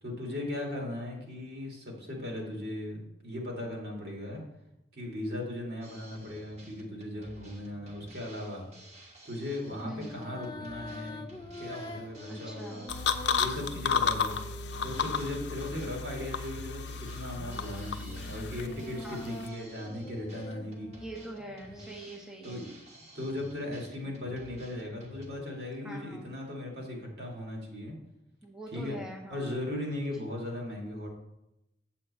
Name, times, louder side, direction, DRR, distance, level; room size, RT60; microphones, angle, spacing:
voice 1, 0.0-4.4 4.9-8.6 9.2-11.2 11.6-14.3 14.8-20.9 22.4-22.6 23.1-27.9 28.7-29.0 29.3-31.1, left 1 dB, 60° right, -1 dB, 2.5 m, -38 dB
Drum kit, 5.8-25.3, equal, 40° right, 1.5 m, -52 dB
sound 1, 7.8-8.1 9.5-16.1 17.0-22.6, left 1 dB, 25° left, 0.6 m, -46 dB
voice 2, 9.8-10.3 12.3-12.8 19.0-19.2 21.0-22.7 25.8-26.3 28.4-29.5 30.2-30.3, right 1 dB, 5° right, 0 dB, 1.0 m, -44 dB
sound 2, 12.9-19.5, left 6 dB, 80° left, 0.6 m, -33 dB
7.9 x 7.6 x 4.3 m, 0.88 s
head